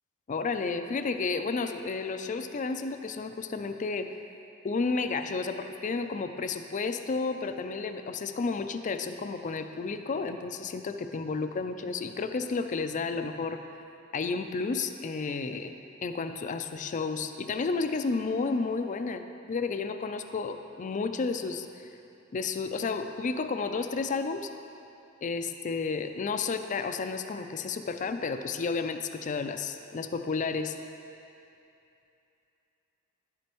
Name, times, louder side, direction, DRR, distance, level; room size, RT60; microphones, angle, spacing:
voice 1, 0.3-4.1 4.6-13.6 14.1-15.7 16.0-19.2 19.5-21.9 22.3-24.5 25.2-30.8, left 4 dB, 40° left, 8 dB, 0.4 m, -32 dB
10.5 x 8.4 x 3.0 m, 2.8 s
head